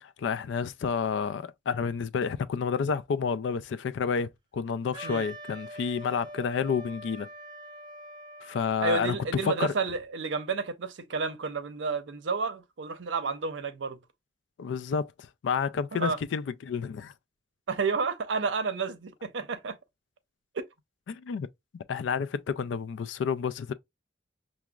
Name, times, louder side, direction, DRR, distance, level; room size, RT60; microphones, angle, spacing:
voice 1, 0.0-7.3 8.4-9.7 14.6-17.1 21.1-21.5 21.9-23.7, left 6 dB, 85° left, 0.3 m, -30 dB
Wind instrument woodwind instrument, 4.9-8.8, right 1 dB, 25° right, 0.4 m, -44 dB
voice 2, 8.8-14.0 15.9-16.2 17.7-19.8, right 4 dB, 90° right, 0.5 m, -31 dB
5.8 x 2.0 x 2.2 m
head